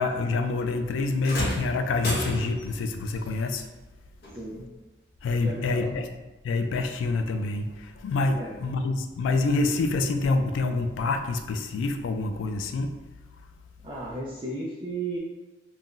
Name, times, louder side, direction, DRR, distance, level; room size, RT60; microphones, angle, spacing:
voice 1, 0.0-3.7 5.2-6.1 6.4-13.1, left 3 dB, 85° left, 6 dB, 0.3 m, -27 dB
sound 1, 1.2-2.8 4.2-4.4 5.3-5.4, left 1 dB, 55° left, 0.7 m, -31 dB
voice 2, 4.3-4.7 5.4-5.9 8.4-8.6 13.8-15.2, right 2 dB, 25° right, -6 dB, 0.4 m, -34 dB
2.5 x 2.2 x 3.6 m, 1.1 s
head